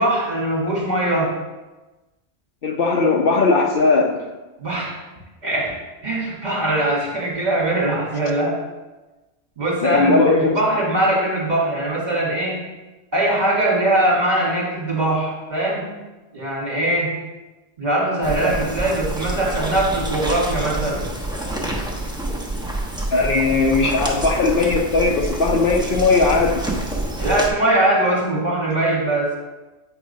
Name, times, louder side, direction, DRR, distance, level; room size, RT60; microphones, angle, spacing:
voice 1, 0.0-1.4 4.6-4.9 5.4-8.6 9.6-12.6 13.1-15.9 16.3-17.2 17.8-21.1 27.2-29.4, right 1 dB, 40° right, -5 dB, 2.1 m, -21 dB
voice 2, 2.6-4.2 9.8-10.5 23.1-26.6, left 3 dB, 60° left, 1 dB, 0.9 m, -18 dB
sound 1, 18.2-27.5, right 1 dB, 5° right, 1.0 m, -27 dB
8.3 x 3.8 x 5.3 m, 1.1 s
omnidirectional pair, 1.1 m